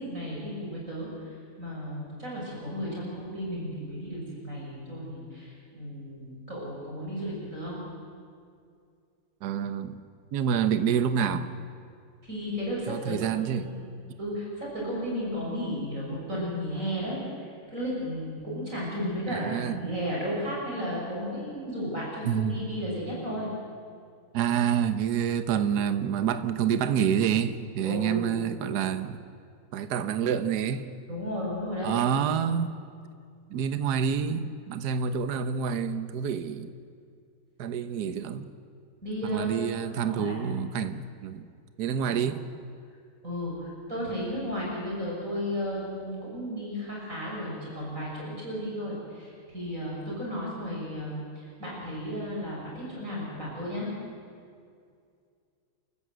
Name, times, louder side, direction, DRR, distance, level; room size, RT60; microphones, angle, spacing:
voice 1, 0.0-7.8 12.2-13.2 13.4-23.5 27.8-28.4 31.1-32.0 39.0-39.6 39.9-40.4 42.1-42.2 43.2-53.9, equal, 35° right, 6.7 m, -34 dB
voice 2, 9.4-10.0 10.3-11.5 12.9-13.7 19.3-19.8 22.3-22.7 24.3-29.2 29.7-30.9 31.8-32.8 33.5-36.7 37.6-38.5 39.3-41.4 41.8-42.4, right 8 dB, 55° right, 1.4 m, -28 dB
29.5 x 14.5 x 7.8 m
omnidirectional pair, 2.3 m